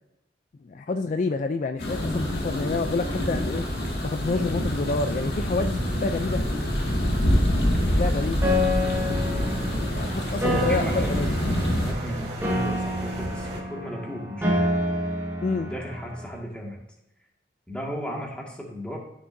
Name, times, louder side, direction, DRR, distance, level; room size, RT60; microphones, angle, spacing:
voice 1, 0.6-3.7 4.0-6.4 7.8-8.5 9.9-11.3 15.4-15.7, left 3 dB, 45° left, 8 dB, 0.3 m, -28 dB
sound 1, 1.8-11.9, equal, 65° left, 1.9 m, -26 dB
sound 2, 2.1-13.6, equal, 35° right, 1.9 m, -36 dB
Piano, 8.4-16.4, left 1 dB, 15° right, 1.5 m, -28 dB
voice 2, 10.4-11.2 11.8-14.7 15.6-16.8 17.7-19.0, equal, 5° left, -2 dB, 1.8 m, -35 dB
13.0 x 6.6 x 2.6 m, 0.85 s
head